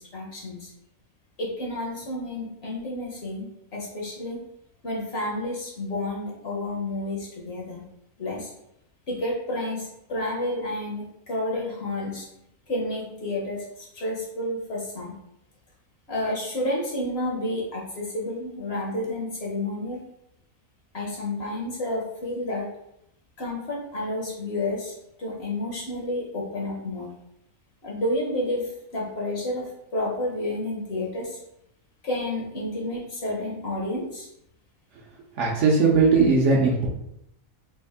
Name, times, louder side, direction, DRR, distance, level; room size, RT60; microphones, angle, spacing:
voice 1, 0.1-0.7 1.4-4.4 4.8-7.8 8.2-8.5 9.1-12.2 12.7-15.1 16.1-20.0 20.9-22.7 23.4-24.9 25.2-27.1 27.8-29.6 29.9-31.4 32.0-34.3, left 1 dB, 50° left, -3 dB, 1.0 m, -30 dB
voice 2, 35.4-36.9, right 4 dB, 60° right, -2 dB, 0.9 m, -19 dB
3.4 x 2.4 x 3.5 m, 0.80 s
omnidirectional pair, 1.5 m